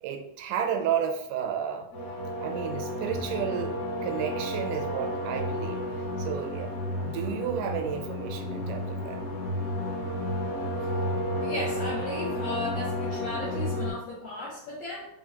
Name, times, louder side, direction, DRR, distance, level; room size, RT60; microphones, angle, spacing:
voice 1, 0.0-1.9 2.4-5.8 6.2-9.2, right 8 dB, 85° right, 5 dB, 2.1 m, -32 dB
sound 1, 1.9-13.9, equal, 55° left, 2.5 m, -32 dB
voice 2, 11.4-15.2, left 2 dB, 75° left, -6 dB, 1.4 m, -36 dB
5.3 x 2.7 x 2.8 m, 0.78 s
omnidirectional pair, 3.7 m